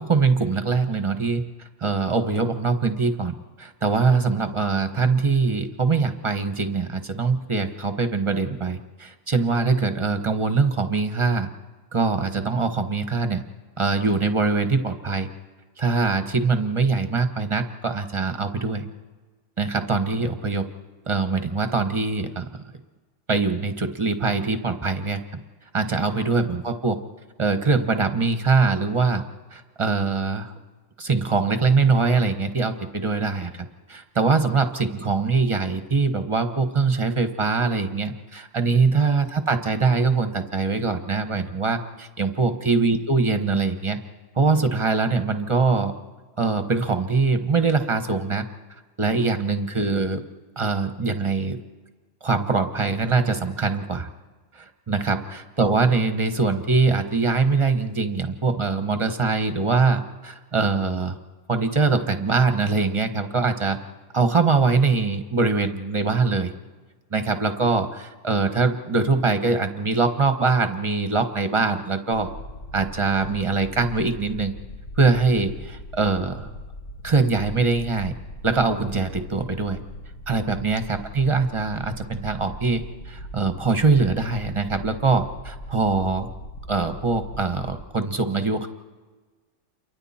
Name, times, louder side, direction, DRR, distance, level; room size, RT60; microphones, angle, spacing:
voice 1, 0.0-1.4 1.8-11.5 11.9-13.4 13.8-15.3 15.8-18.9 19.6-20.7 21.1-22.6 23.3-25.2 25.7-27.0 27.4-29.2 29.5-30.5 31.0-44.0 44.4-45.9 46.4-48.4 49.0-50.2 50.6-51.6 52.2-54.1 54.5-61.2 61.5-63.8 64.1-66.5 67.1-72.3 72.7-74.6 75.0-76.5 77.0-78.1 78.4-79.8 80.3-86.3 86.7-88.7, right 4 dB, 25° right, 8 dB, 1.3 m, -23 dB
sound 1, 72.1-87.8, equal, 70° left, 1.9 m, -39 dB
29.0 x 23.5 x 4.4 m, 1.3 s
omnidirectional pair, 1.2 m